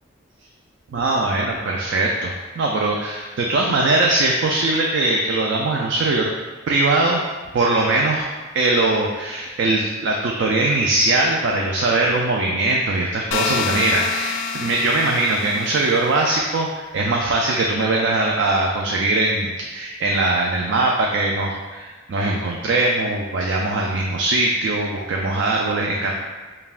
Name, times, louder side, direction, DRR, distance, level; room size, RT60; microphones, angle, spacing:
voice 1, 0.9-6.3 6.7-7.2 7.5-8.3 8.5-26.1, right 2 dB, 70° right, -1 dB, 0.3 m, -21 dB
sound 1, 13.3-16.2, left 6 dB, 85° left, 0.3 m, -27 dB
5.4 x 2.2 x 2.4 m, 1.3 s
head